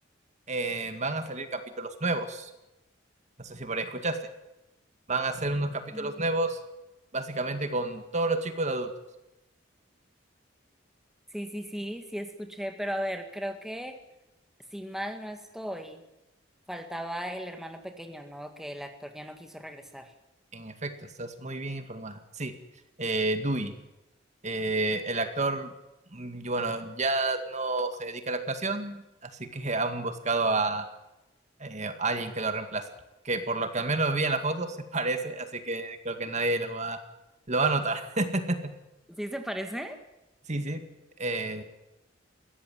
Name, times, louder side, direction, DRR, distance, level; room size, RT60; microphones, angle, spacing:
voice 1, 0.5-2.5 3.4-4.2 5.1-6.6 7.1-8.9 20.5-20.9 21.2-22.5 23.0-23.7 24.4-25.7 26.1-29.0 29.4-30.9 31.6-32.8 33.2-34.7 34.9-37.0 37.5-38.7 40.5-40.8 41.2-41.6, right 2 dB, 40° right, 8 dB, 2.1 m, -30 dB
voice 2, 5.9-6.2 11.3-14.0 14.7-16.0 16.7-20.1 39.1-40.0, equal, ahead, 6 dB, 2.0 m, -36 dB
22.5 x 17.5 x 9.3 m, 0.94 s
head